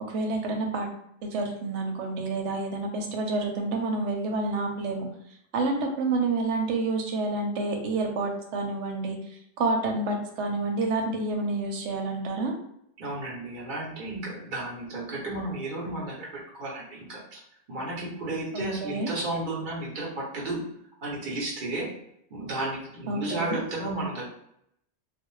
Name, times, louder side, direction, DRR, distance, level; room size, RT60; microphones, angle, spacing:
voice 1, 0.1-0.9 1.2-5.1 5.5-9.2 9.6-12.5 18.5-19.1 23.1-23.6, right 3 dB, 90° right, 3 dB, 0.9 m, -28 dB
voice 2, 13.0-17.4 17.7-20.6 21.0-21.9 22.3-24.3, right 2 dB, 50° right, -4 dB, 0.8 m, -33 dB
2.4 x 2.0 x 3.0 m, 0.75 s
omnidirectional pair, 1.2 m